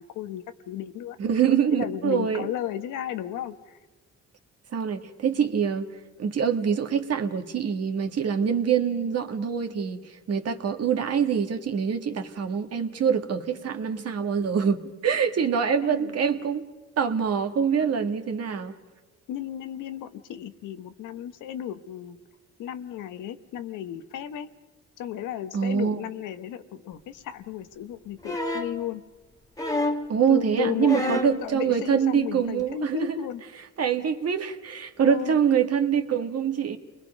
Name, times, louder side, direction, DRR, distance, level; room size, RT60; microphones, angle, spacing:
voice 1, 0.0-1.2 1.7-3.8 15.8-16.1 19.3-22.2 22.6-24.5 25.0-29.0 30.3-33.4 35.0-35.4, left 11 dB, 90° left, 10 dB, 1.2 m, -34 dB
voice 2, 1.2-2.4 4.7-5.9 6.2-16.6 17.0-18.7 25.5-26.0 30.1-33.2 33.8-36.8, right 7 dB, 55° right, 6 dB, 1.7 m, -25 dB
sound 1, 28.2-28.8 29.6-30.1 30.9-31.4 32.6-32.7, left 1 dB, 10° left, 1.9 m, -28 dB
29.0 x 21.0 x 5.2 m, 1.2 s
cardioid pair, 90°, 30 cm